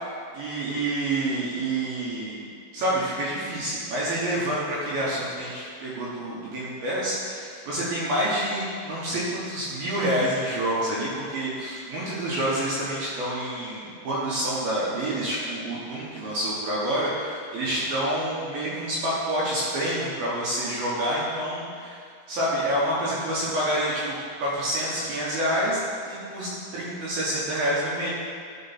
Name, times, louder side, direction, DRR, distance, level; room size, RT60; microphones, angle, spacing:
voice 1, 0.3-2.4 2.7-22.0 22.3-25.8 26.1-28.1, right 1 dB, 70° right, -7 dB, 2.5 m, -28 dB
12.5 x 4.6 x 4.2 m, 2.2 s
omnidirectional pair, 5.4 m